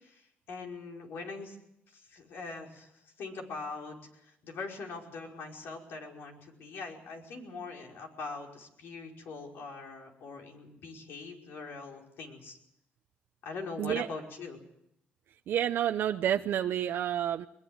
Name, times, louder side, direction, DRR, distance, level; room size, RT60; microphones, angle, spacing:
voice 1, 0.0-1.6 1.9-12.6 13.4-14.6, left 3 dB, 70° left, 1 dB, 5.3 m, -42 dB
voice 2, 15.5-17.5, right 10 dB, 70° right, 6 dB, 0.8 m, -29 dB
22.0 x 22.0 x 8.0 m, 0.81 s
cardioid pair, 95°, 4 cm